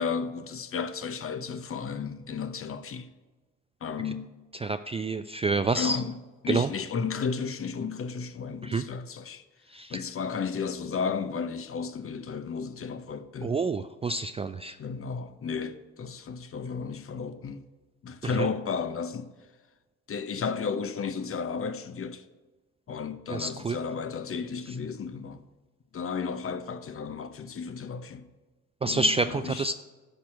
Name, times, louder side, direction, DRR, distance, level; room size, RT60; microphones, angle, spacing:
voice 1, 0.0-3.1 3.8-4.3 5.7-6.2 6.4-9.4 9.9-13.5 14.8-17.6 18.0-19.3 20.1-22.2 22.9-25.4 25.9-28.3 28.8-29.7, left 5 dB, 35° left, 0.8 m, -33 dB
voice 2, 4.6-6.0 6.5-6.7 8.6-8.8 9.7-10.0 13.4-14.8 18.4-18.5 23.3-23.8 28.8-29.7, right 3 dB, 15° right, 0.3 m, -28 dB
11.0 x 4.4 x 7.3 m
hypercardioid pair, 50°, 37 cm